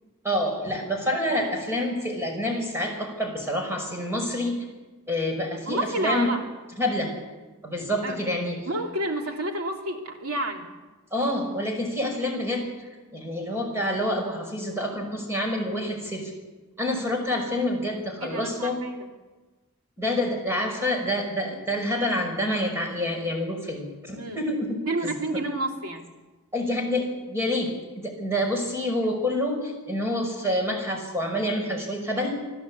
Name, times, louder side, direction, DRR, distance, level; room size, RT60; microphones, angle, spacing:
voice 1, 0.2-4.5 5.1-6.3 6.8-7.1 7.6-8.6 11.1-12.6 13.1-16.3 16.8-18.8 20.0-24.7 26.5-27.7 28.0-32.4, left 1 dB, 10° right, 1 dB, 5.3 m, -27 dB
voice 2, 5.7-6.4 8.0-8.2 8.7-10.7 18.2-19.1 24.2-24.4 24.9-26.1 29.0-29.1, right 1 dB, 75° right, 3 dB, 2.9 m, -30 dB
25.0 x 14.5 x 8.5 m, 1.2 s
head